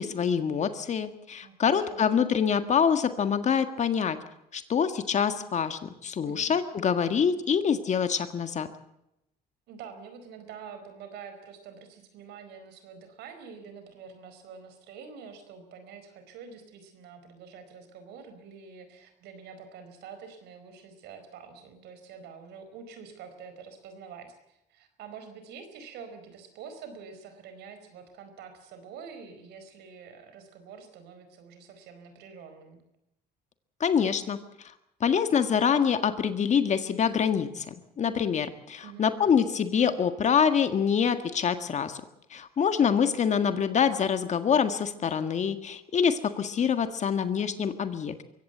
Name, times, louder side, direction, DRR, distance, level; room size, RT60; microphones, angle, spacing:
voice 1, 0.0-4.2 4.5-8.7 33.8-34.4 35.0-42.0 42.3-48.2, left 7 dB, 45° left, 9 dB, 1.7 m, -25 dB
voice 2, 1.4-2.0 6.2-6.5 9.7-32.8 38.8-39.2, right 6 dB, 85° right, 8 dB, 4.7 m, -46 dB
23.0 x 16.5 x 8.0 m, 0.83 s
cardioid pair, 110°, 17 cm